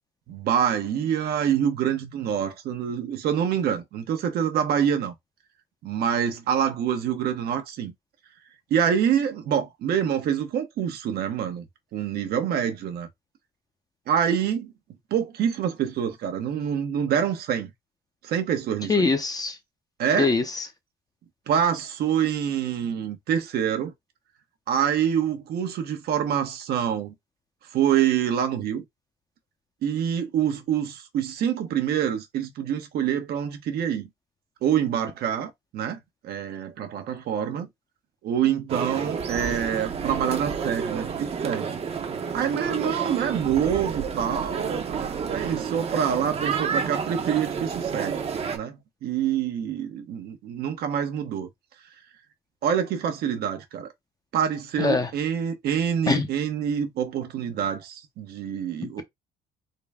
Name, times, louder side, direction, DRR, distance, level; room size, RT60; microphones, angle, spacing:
voice 1, 0.3-5.1 5.8-7.9 8.7-11.7 11.9-13.1 14.1-14.7 15.1-17.7 18.2-19.1 20.0-20.3 21.5-23.9 24.7-27.1 27.7-28.8 29.8-34.1 34.6-36.0 36.2-37.7 38.2-41.8 42.3-48.2 48.5-51.5 52.6-53.9 54.3-59.0, right 8 dB, 70° right, 0.9 m, -26 dB
voice 2, 18.9-19.6 20.2-20.7 54.8-55.1 56.1-56.3 58.8-59.0, left 4 dB, 20° left, 0.7 m, -23 dB
sound 1, 38.7-48.6, right 6 dB, 35° right, 0.8 m, -30 dB
3.8 x 2.2 x 3.5 m
cardioid pair, 110°, 17 cm